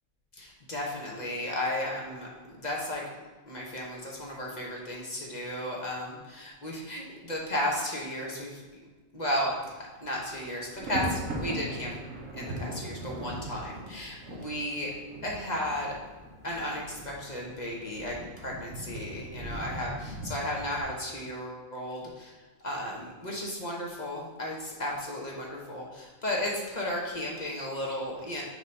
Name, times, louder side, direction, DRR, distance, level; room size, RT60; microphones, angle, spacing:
voice 1, 0.4-3.0 3.5-8.6 9.1-9.6 10.0-11.9 12.3-14.9 15.2-15.9 16.4-22.3 22.6-28.4, left 1 dB, 35° left, -3 dB, 1.0 m, -34 dB
Thunder, 9.4-9.7 10.0-20.8, right 1 dB, 65° right, 1.3 m, -39 dB
6.3 x 3.0 x 5.2 m, 1.3 s
omnidirectional pair, 1.5 m